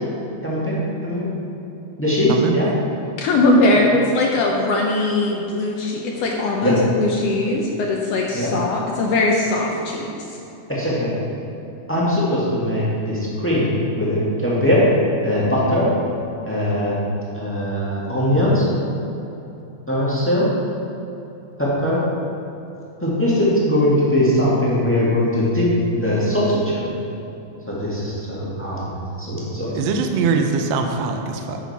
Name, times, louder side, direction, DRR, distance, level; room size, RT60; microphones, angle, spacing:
voice 1, 0.4-1.3 2.0-2.7 3.7-3.8 6.6-6.8 8.3-8.5 10.7-11.1 11.9-14.8 15.2-15.9 16.4-17.0 17.3-18.6 19.9-20.5 21.6-22.0 23.0-26.9 27.7-29.8, left 1 dB, 10° left, -7 dB, 0.8 m, -20 dB
voice 2, 2.3-2.7 29.7-31.6, right 5 dB, 75° right, 4 dB, 1.7 m, -22 dB
voice 3, 3.2-10.4, left 2 dB, 75° left, 0 dB, 1.5 m, -20 dB
10.0 x 6.3 x 4.1 m, 3.0 s
omnidirectional pair, 3.3 m